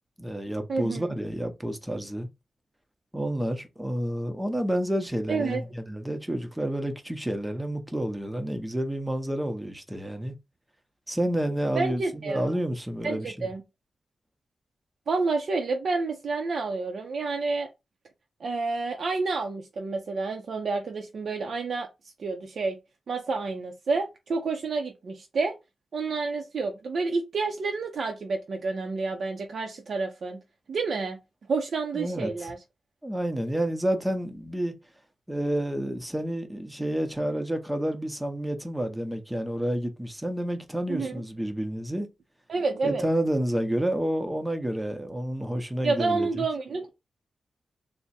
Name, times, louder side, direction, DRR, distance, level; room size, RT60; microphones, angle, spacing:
voice 1, 0.2-2.3 3.1-10.4 11.1-13.5 31.9-32.5 33.0-34.7 35.3-42.1 42.8-46.4, right 1 dB, 10° right, 0.7 m, -29 dB
voice 2, 0.7-1.1 5.3-5.6 11.7-12.5 13.0-13.6 15.1-17.7 18.4-21.9 22.2-22.8 23.1-25.5 25.9-30.4 30.7-31.2 31.5-32.6 40.9-41.2 42.5-43.1 45.8-46.9, right 4 dB, 65° right, 0.6 m, -29 dB
3.5 x 2.1 x 4.1 m
wide cardioid pair, 125°, 0 cm